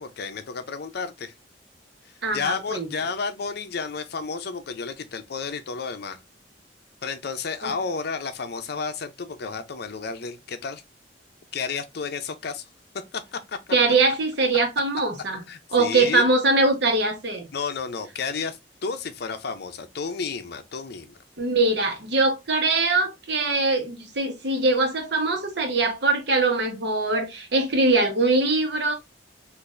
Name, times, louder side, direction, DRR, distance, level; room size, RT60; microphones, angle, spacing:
voice 1, 0.0-1.3 2.3-6.2 7.0-10.8 11.5-12.6 13.1-13.6 15.5-16.2 17.5-21.2, left 5 dB, 60° left, 0.5 m, -31 dB
voice 2, 2.2-2.9 7.6-7.7 13.7-15.4 15.7-17.5 21.4-28.9, right 3 dB, 70° right, 1.1 m, -22 dB
3.9 x 2.5 x 2.5 m
head